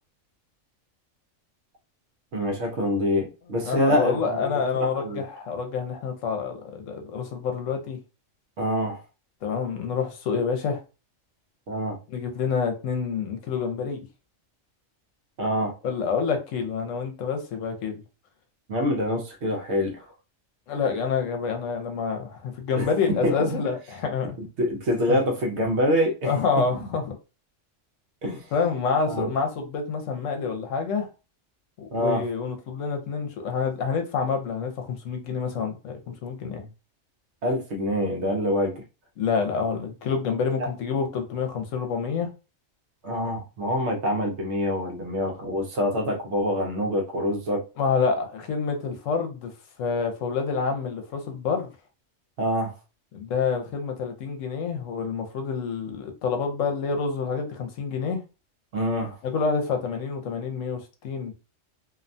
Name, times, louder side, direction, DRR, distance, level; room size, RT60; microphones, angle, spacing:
voice 1, 2.3-5.2 8.6-9.0 11.7-12.0 15.4-15.8 18.7-20.0 22.8-23.6 24.6-26.9 28.2-28.5 29.1-29.3 31.9-32.3 37.4-38.8 40.6-40.7 43.0-47.7 52.4-52.7 58.7-59.1, equal, 65° right, 1.0 m, -26 dB
voice 2, 3.6-8.0 9.4-10.8 12.1-14.1 15.8-18.0 20.7-24.4 25.1-25.2 26.3-27.2 28.5-31.1 31.8-36.7 39.2-42.3 47.8-49.5 49.8-51.7 53.1-58.2 59.2-61.3, left 5 dB, 75° left, 1.0 m, -27 dB
2.7 x 2.2 x 2.5 m
omnidirectional pair, 1.3 m